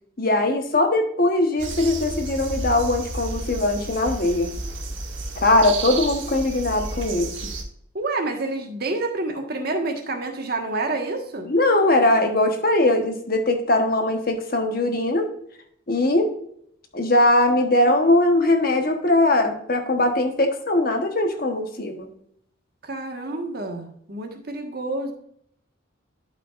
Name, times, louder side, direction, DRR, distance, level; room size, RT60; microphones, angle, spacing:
voice 1, 0.2-4.5 5.4-7.5 11.5-15.3 15.9-16.3 16.9-22.1, left 2 dB, 45° left, 5 dB, 1.1 m, -20 dB
sound 1, 1.6-7.6, right 2 dB, 65° right, 1.2 m, -32 dB
voice 2, 7.9-11.5 22.8-25.1, right 2 dB, 50° right, 3 dB, 1.5 m, -28 dB
12.0 x 5.7 x 2.5 m, 0.68 s
head